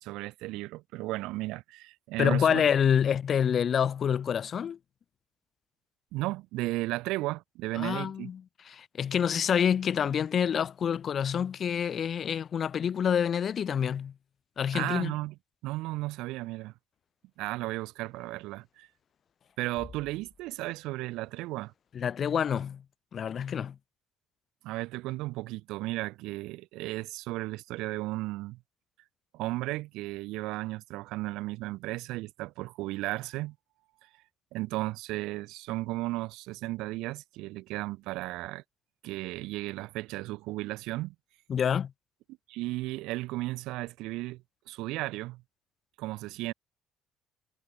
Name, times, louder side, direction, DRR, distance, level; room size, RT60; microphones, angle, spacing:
voice 1, 0.0-2.7 6.1-8.3 14.7-15.3 15.6-16.7 17.4-18.9 19.6-21.7 24.6-28.6 29.3-33.6 34.5-38.6 39.0-41.1 42.5-45.4 46.0-46.5, right 19 dB, 60° right, 0.6 m, -34 dB
voice 2, 2.2-4.8 7.8-14.1 14.6-15.1 21.9-22.8 23.1-23.8 41.5-41.9, left 8 dB, 45° left, 0.4 m, -27 dB
sound 1, 19.8-21.2, left 4 dB, 30° left, 5.3 m, -52 dB
figure-of-eight pair, 50°, 0 cm